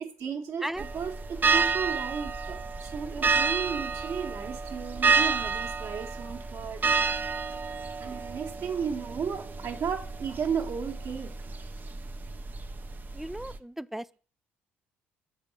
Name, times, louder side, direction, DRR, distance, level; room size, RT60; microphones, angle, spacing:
voice 1, 0.0-7.4 8.0-11.5, right 6 dB, 60° right, 1.8 m, -34 dB
sound 1, 0.8-13.6, right 5 dB, 35° right, 0.7 m, -30 dB
voice 2, 13.1-14.2, right 1 dB, 5° right, 0.4 m, -36 dB
7.4 x 4.6 x 6.7 m
hypercardioid pair, 60°, 5 cm